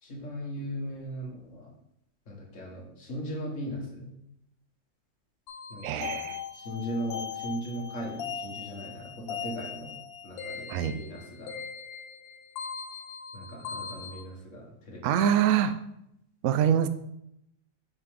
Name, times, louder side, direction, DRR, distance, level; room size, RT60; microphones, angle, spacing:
voice 1, 0.0-1.7 2.3-4.1 5.7-6.0 6.5-9.9 10.2-11.5 13.3-15.0, equal, 45° left, -2 dB, 1.8 m, -38 dB
sound 1, 5.5-14.2, left 6 dB, 85° left, 1.5 m, -39 dB
voice 2, 5.8-6.4 10.7-11.0 15.0-15.7 16.4-16.9, right 9 dB, 90° right, 11 dB, 0.7 m, -24 dB
6.0 x 5.3 x 3.7 m, 0.77 s
omnidirectional pair, 2.0 m